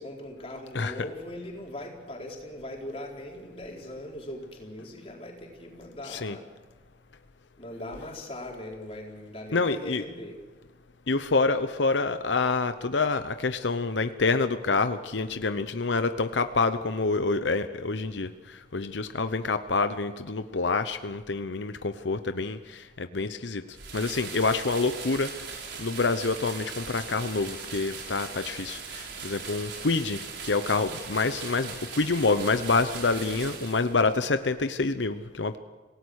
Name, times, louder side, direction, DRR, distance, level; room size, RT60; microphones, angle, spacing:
voice 1, 0.0-6.4 7.6-10.4 33.1-33.5, left 1 dB, 35° left, -1 dB, 4.4 m, -40 dB
voice 2, 6.0-6.4 9.5-10.0 11.1-23.6 23.9-25.3 25.8-35.6, left 3 dB, 85° left, 10 dB, 0.9 m, -27 dB
sound 1, 23.7-34.1, right 5 dB, 75° right, 4.4 m, -40 dB
27.5 x 17.5 x 6.5 m, 1.4 s
head